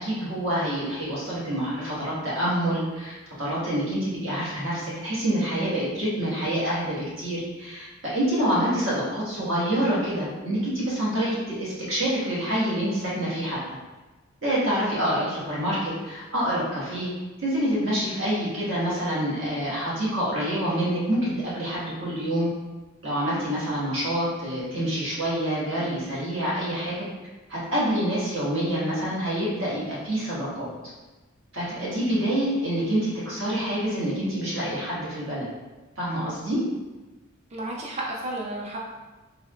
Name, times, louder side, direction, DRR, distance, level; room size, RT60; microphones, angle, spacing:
voice 1, 0.0-13.6 14.4-17.1 17.4-22.5 23.0-27.1 27.5-30.7 31.5-35.5 36.0-36.6, right 1 dB, 60° right, -8 dB, 1.4 m, -27 dB
voice 2, 37.5-38.8, right 1 dB, 30° right, -2 dB, 0.4 m, -33 dB
3.5 x 3.4 x 2.3 m, 1.2 s
head